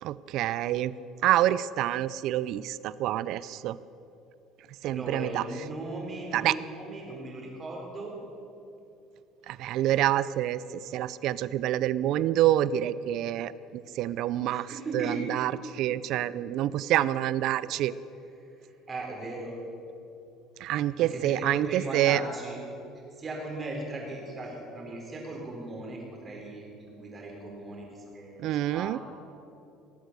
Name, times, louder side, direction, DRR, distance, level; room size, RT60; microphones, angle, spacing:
voice 1, 0.0-0.9 1.2-3.8 4.8-5.4 6.3-6.5 9.5-17.9 20.6-22.2 28.4-29.0, right 13 dB, 65° right, 18 dB, 0.4 m, -27 dB
voice 2, 4.9-8.1 14.5-15.2 18.4-19.6 20.6-22.6 23.1-29.0, right 2 dB, 30° right, 0 dB, 3.8 m, -38 dB
19.5 x 8.1 x 6.7 m, 2.8 s
cardioid pair, 120°, 0 cm